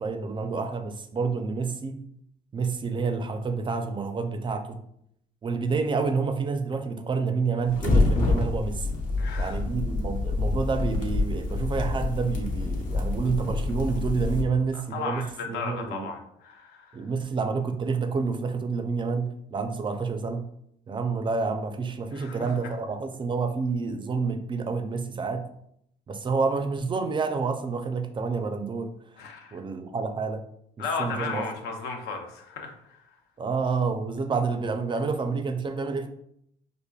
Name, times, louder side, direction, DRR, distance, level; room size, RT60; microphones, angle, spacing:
voice 1, 0.0-2.0 2.5-4.8 5.4-8.9 9.4-16.1 16.9-20.5 20.9-25.5 26.1-28.9 29.5-30.4 31.0-31.4 33.4-36.1, right 4 dB, 30° right, 7 dB, 0.4 m, -28 dB
sound 1, 7.7-14.4, left 2 dB, 55° left, 0.8 m, -27 dB
voice 2, 9.2-9.6 14.7-17.0 22.1-22.5 29.2-29.6 30.8-33.0, left 4 dB, 80° left, 3 dB, 0.7 m, -35 dB
4.8 x 2.5 x 2.3 m, 0.72 s
cardioid pair, 110°, 17 cm